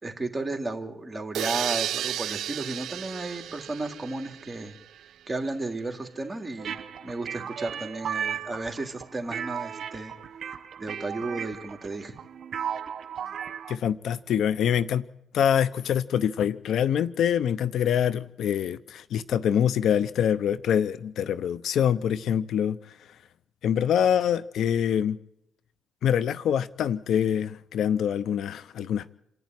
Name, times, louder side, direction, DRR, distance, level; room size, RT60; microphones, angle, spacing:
voice 1, 0.0-4.7 5.3-10.1 10.8-12.1, right 2 dB, 20° right, 3.0 m, -33 dB
sound 1, 1.3-5.1, right 11 dB, 75° right, 0.7 m, -33 dB
sound 2, 6.6-13.8, right 8 dB, 60° right, 1.4 m, -35 dB
voice 2, 13.7-15.0 15.3-22.8 23.6-25.2 26.0-29.1, left 9 dB, 70° left, 0.7 m, -25 dB
27.5 x 11.0 x 9.7 m
cardioid pair, 90°, 0 cm